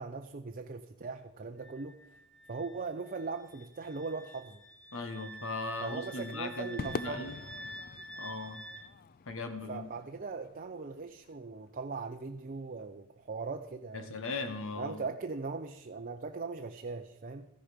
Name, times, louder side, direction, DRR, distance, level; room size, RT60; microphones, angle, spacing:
voice 1, 0.0-2.0 2.5-4.6 5.8-7.3 9.7-14.2 14.8-17.5, right 4 dB, 40° right, 5 dB, 0.6 m, -39 dB
Wind instrument woodwind instrument, 1.6-8.9, right 1 dB, 5° left, 1.6 m, -48 dB
voice 2, 4.9-7.4 8.2-8.6 9.3-9.9 13.9-15.0, left 3 dB, 65° left, 9 dB, 1.4 m, -38 dB
Crowd / Fireworks, 6.8-11.3, left 4 dB, 45° left, 0.4 m, -44 dB
14.0 x 10.5 x 5.1 m, 0.87 s
head